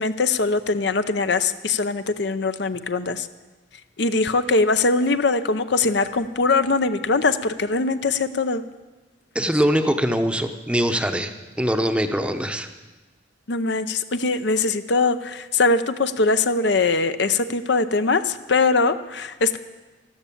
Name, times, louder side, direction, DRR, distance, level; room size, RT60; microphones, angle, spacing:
voice 1, 0.0-3.3 4.0-8.6 13.5-19.6, left 3 dB, 60° left, 11 dB, 0.7 m, -22 dB
voice 2, 9.3-12.7, equal, 5° right, 7 dB, 0.8 m, -22 dB
13.0 x 13.0 x 8.5 m, 1.2 s
head